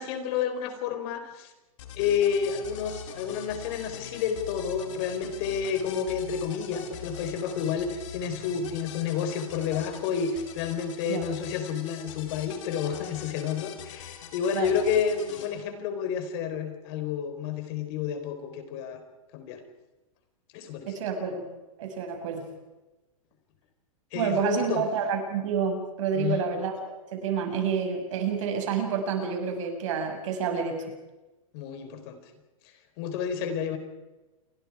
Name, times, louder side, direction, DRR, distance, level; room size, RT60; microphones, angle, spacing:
voice 1, 0.0-1.5 2.0-19.0 19.3-19.6 20.5-20.9 24.1-24.8 26.1-26.5 31.5-32.2 33.0-33.8, left 7 dB, 45° left, 8 dB, 4.3 m, -30 dB
sound 1, 1.8-15.5, left 8 dB, 60° left, 4.5 m, -43 dB
voice 2, 20.9-21.4 21.8-22.4 24.1-30.8, right 6 dB, 60° right, 4 dB, 6.5 m, -29 dB
28.5 x 23.5 x 4.9 m, 1.1 s
hypercardioid pair, 135°, 18 cm